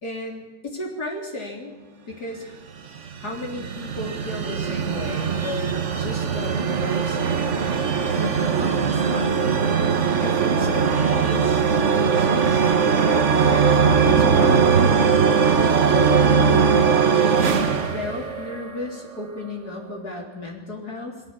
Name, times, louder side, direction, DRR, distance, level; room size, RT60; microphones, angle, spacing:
voice 1, 0.0-1.7 2.1-2.6 3.2-7.4 8.2-9.4 10.2-15.0 15.9-16.9 17.9-21.2, left 2 dB, 50° left, 0 dB, 4.1 m, -34 dB
sound 1, 2.7-18.9, right 6 dB, 40° right, 1.4 m, -20 dB
23.0 x 17.0 x 8.9 m, 1.2 s
omnidirectional pair, 2.3 m